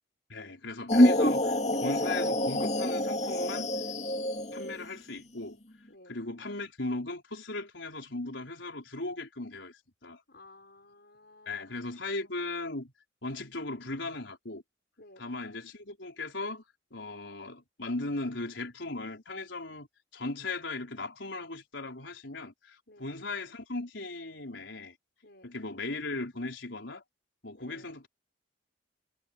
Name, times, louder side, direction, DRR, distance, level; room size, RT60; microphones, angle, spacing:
voice 1, 0.3-3.7 4.5-5.6 6.1-10.2 11.5-12.9 13.2-14.6 15.2-16.6 16.9-19.9 20.1-25.0 25.4-27.0 27.4-28.1, left 2 dB, 75° left, 4.5 m, -37 dB
sound 1, 0.9-4.8, left 1 dB, 35° left, 2.2 m, -26 dB
voice 2, 5.9-6.2 10.3-11.7 15.0-15.3 22.9-23.1 25.2-25.6 27.5-28.0, left 2 dB, 60° left, 5.9 m, -55 dB
head